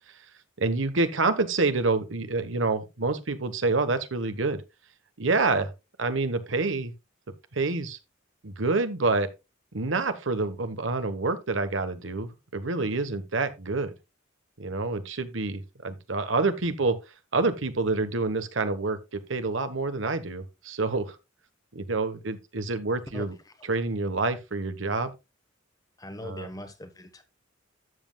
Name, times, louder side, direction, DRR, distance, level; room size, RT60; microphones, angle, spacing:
voice 1, 0.6-4.6 5.2-5.7 6.0-6.9 7.5-8.0 8.4-9.3 9.7-13.9 14.6-17.0 17.3-21.2 21.7-23.4 23.7-25.1 26.2-26.5, right 3 dB, 70° right, 1.1 m, -27 dB
voice 2, 23.1-23.7 26.0-27.2, left 1 dB, 20° left, 1.1 m, -41 dB
13.0 x 7.6 x 2.3 m
head